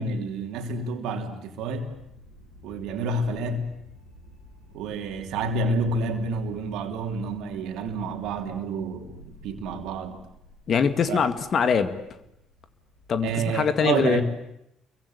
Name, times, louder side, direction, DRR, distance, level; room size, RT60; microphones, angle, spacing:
voice 1, 0.0-1.9 2.6-3.7 4.7-9.1 9.4-10.2 11.1-11.2 13.2-14.2, right 3 dB, 60° right, 5 dB, 3.2 m, -29 dB
sound 1, 1.7-13.4, left 1 dB, 85° left, 5.6 m, -51 dB
voice 2, 10.7-12.0 13.1-14.2, left 6 dB, 45° left, 11 dB, 2.1 m, -23 dB
29.5 x 23.5 x 8.6 m, 0.82 s
figure-of-eight pair, 50°, 0 cm